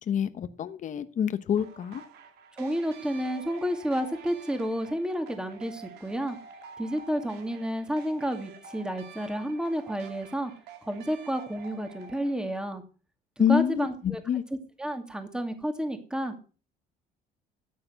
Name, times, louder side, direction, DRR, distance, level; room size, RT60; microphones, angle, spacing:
voice 1, 0.1-2.0 13.4-14.4, left 8 dB, 50° left, 11 dB, 1.0 m, -27 dB
sound 1, 1.6-12.4, right 6 dB, 75° right, 2.5 m, -48 dB
voice 2, 2.5-6.4 6.8-10.5 10.8-12.8 13.4-14.2 14.5-16.4, equal, 5° right, 6 dB, 2.3 m, -31 dB
13.0 x 8.8 x 5.8 m, 0.36 s
cardioid pair, 110°, 17 cm